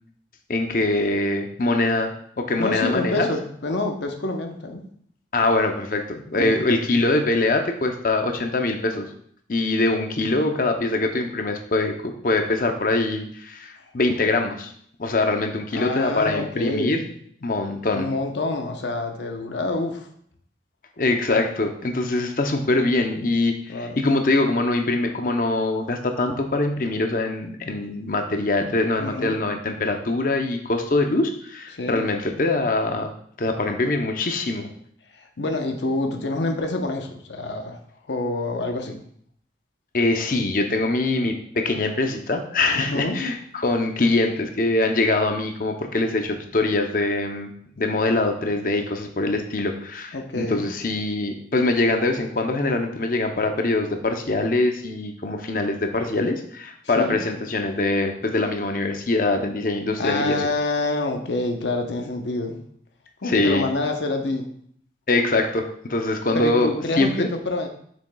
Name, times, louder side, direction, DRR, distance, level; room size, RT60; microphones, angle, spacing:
voice 1, 0.5-3.3 5.3-9.1 9.5-14.7 15.0-17.0 17.4-18.1 21.0-33.1 33.4-34.7 39.9-47.5 47.8-60.5 63.2-63.6 65.1-66.7 67.0-67.3, left 2 dB, 50° left, 5 dB, 0.7 m, -23 dB
voice 2, 2.6-4.8 6.3-6.6 15.7-17.1 17.9-20.1 23.7-24.0 29.0-29.4 31.7-32.0 35.1-37.8 38.1-39.0 42.7-43.2 50.1-50.6 56.8-57.2 60.0-62.6 63.2-64.5 66.3-67.7, left 2 dB, 90° left, 4 dB, 0.9 m, -27 dB
7.0 x 6.3 x 2.3 m, 0.63 s
head